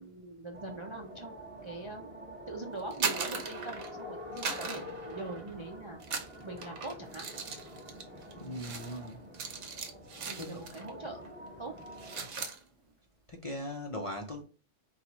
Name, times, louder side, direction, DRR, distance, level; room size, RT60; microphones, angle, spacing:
voice 1, 0.0-1.3 1.6-6.0 6.4-7.2 10.2-11.3 11.6-11.7, right 2 dB, 40° right, 0.4 m, -42 dB
sound 1, 0.5-12.3, equal, 10° right, 1.0 m, -47 dB
sound 2, 2.8-4.0 4.4-5.6 6.0-10.9 11.2-11.5 11.8-12.6, right 5 dB, 70° right, 1.1 m, -38 dB
voice 2, 8.4-9.2 10.4-10.7 13.3-14.4, left 1 dB, 40° left, 0.5 m, -39 dB
4.5 x 2.4 x 3.9 m
omnidirectional pair, 1.3 m